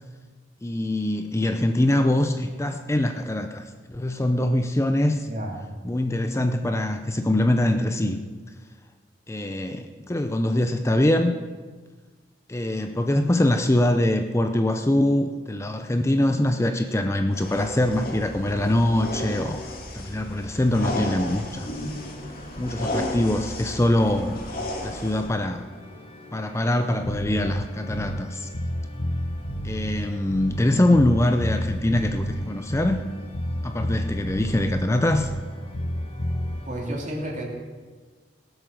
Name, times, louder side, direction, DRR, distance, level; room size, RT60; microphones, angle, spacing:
voice 1, 0.6-5.3 5.8-8.2 9.3-11.3 12.5-19.6 19.9-21.7 22.6-24.4 24.8-25.6 26.3-28.5 29.6-33.0 33.6-35.3, left 1 dB, 15° left, 7 dB, 0.6 m, -23 dB
voice 2, 5.3-5.7 36.7-37.4, right 1 dB, 45° right, 0 dB, 2.8 m, -31 dB
sound 1, 17.3-25.3, left 1 dB, 55° left, 2.4 m, -33 dB
sound 2, 21.5-36.7, left 1 dB, 35° left, 1.7 m, -46 dB
Bass guitar, 27.0-28.3 28.5-30.7 30.9-33.1 33.3-35.5 35.7-36.6, equal, 80° left, 1.3 m, -30 dB
18.0 x 8.0 x 6.5 m, 1.4 s
head